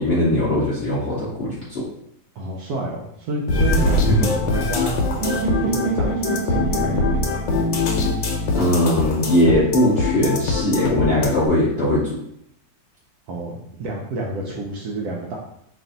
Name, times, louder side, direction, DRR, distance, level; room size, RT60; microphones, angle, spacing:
voice 1, 0.0-1.8 8.5-12.1, left 1 dB, 55° left, -8 dB, 0.6 m, -20 dB
voice 2, 2.3-4.1 4.4-5.1 5.5-7.2 13.3-15.4, right 2 dB, 70° right, -2 dB, 0.9 m, -29 dB
sound 1, 3.5-11.5, left 3 dB, 80° left, 1.4 m, -22 dB
sound 2, 5.2-9.2, right 5 dB, 45° right, 1.0 m, -28 dB
3.2 x 2.5 x 3.8 m, 0.73 s
omnidirectional pair, 2.0 m